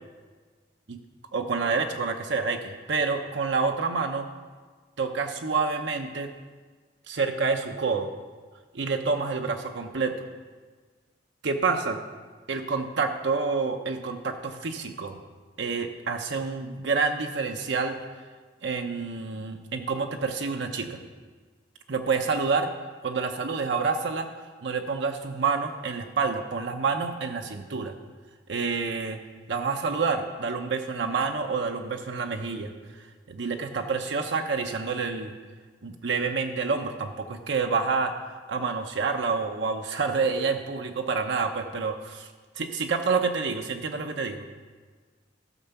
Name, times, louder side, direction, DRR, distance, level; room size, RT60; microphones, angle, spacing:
voice 1, 1.3-4.3 5.0-6.3 7.1-8.1 8.7-10.1 11.4-12.0 12.5-15.2 15.6-18.0 18.6-21.0 21.9-22.7 23.0-24.3 24.6-27.9 28.5-29.2 29.5-32.7 33.0-35.4 35.8-38.1 38.5-44.4, right 4 dB, 70° right, 4 dB, 0.8 m, -28 dB
15.0 x 5.6 x 6.9 m, 1.5 s
head